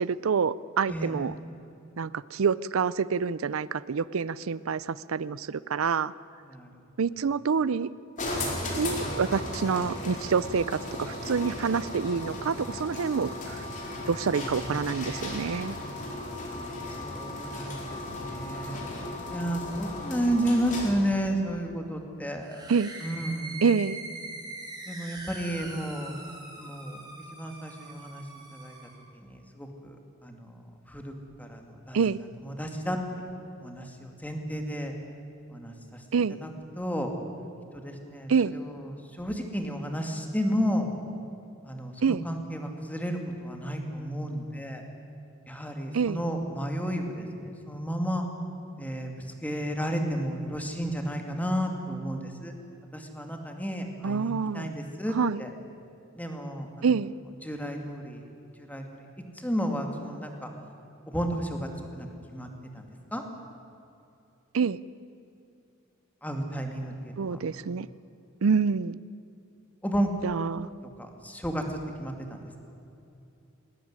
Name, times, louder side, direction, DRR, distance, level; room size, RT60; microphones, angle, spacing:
voice 1, 0.0-1.3 2.0-6.1 7.0-7.9 8.7-13.7 14.1-15.8 22.7-22.9 23.6-24.0 31.9-32.2 36.1-36.4 38.3-38.5 42.0-42.2 45.9-46.2 54.0-54.7 55.1-55.4 56.8-57.1 64.5-64.8 67.2-67.9 68.4-69.0 70.2-70.7, right 5 dB, 90° right, 18 dB, 0.5 m, -27 dB
voice 2, 0.9-1.3 6.5-6.7 16.8-18.8 19.3-22.6 23.0-23.6 24.9-26.2 26.6-27.0 27.3-28.2 28.5-28.7 29.1-29.9 30.2-30.6 30.9-32.0 32.4-33.3 33.6-35.0 35.5-36.0 36.4-36.5 36.8-37.1 37.7-38.6 39.2-40.9 41.7-44.8 45.5-48.3 48.8-52.5 52.9-55.5 56.2-56.9 57.4-58.2 58.7-59.0 59.4-60.5 61.1-62.5 62.7-63.2 66.2-67.4 69.8-70.1 71.0-72.6, equal, 10° left, 3 dB, 2.4 m, -32 dB
sound 1, 8.2-21.1, left 1 dB, 40° left, 4.4 m, -35 dB
sound 2, 22.4-29.0, right 2 dB, 20° right, 5.6 m, -42 dB
20.0 x 17.5 x 9.6 m, 2.7 s
head